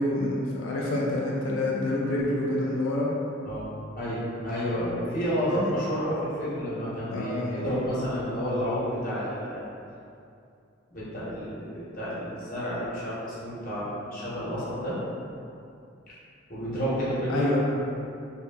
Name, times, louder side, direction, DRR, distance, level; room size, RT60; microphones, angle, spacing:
voice 1, 0.0-3.1 5.5-5.7 7.1-7.7 17.3-17.6, left 1 dB, 70° left, -4 dB, 0.4 m, -27 dB
voice 2, 4.0-9.6 10.9-15.0 16.5-17.6, equal, 45° left, -9 dB, 0.7 m, -30 dB
2.7 x 2.5 x 2.2 m, 2.5 s
head